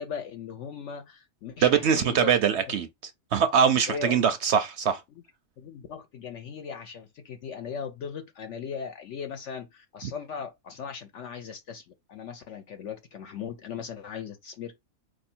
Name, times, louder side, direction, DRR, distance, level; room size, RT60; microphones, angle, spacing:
voice 1, 0.0-2.4 3.9-4.2 5.1-5.2 5.6-14.8, left 6 dB, 65° left, 0.9 m, -38 dB
voice 2, 1.6-2.9 3.3-5.0, right 7 dB, 65° right, 0.7 m, -22 dB
4.4 x 2.7 x 4.3 m
omnidirectional pair, 1.5 m